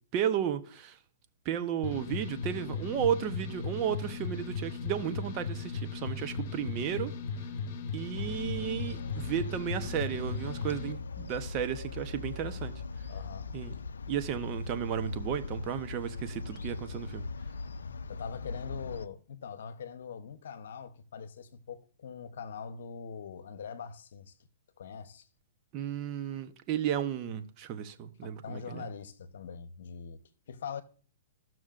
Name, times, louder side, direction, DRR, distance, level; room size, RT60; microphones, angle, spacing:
voice 1, 0.1-1.0 1.4-7.1 7.9-12.7 13.5-13.7 14.1-17.2 25.7-28.8, right 9 dB, 35° right, 0.9 m, -33 dB
sound 1, 1.8-10.9, left 5 dB, 50° left, 1.2 m, -37 dB
sound 2, 8.1-19.1, left 4 dB, 90° left, 0.4 m, -40 dB
voice 2, 13.1-13.5 18.1-24.4 24.8-25.3 28.2-30.2 30.5-30.8, left 6 dB, 75° left, 0.9 m, -42 dB
16.0 x 6.1 x 2.5 m
hypercardioid pair, 130°, 0 cm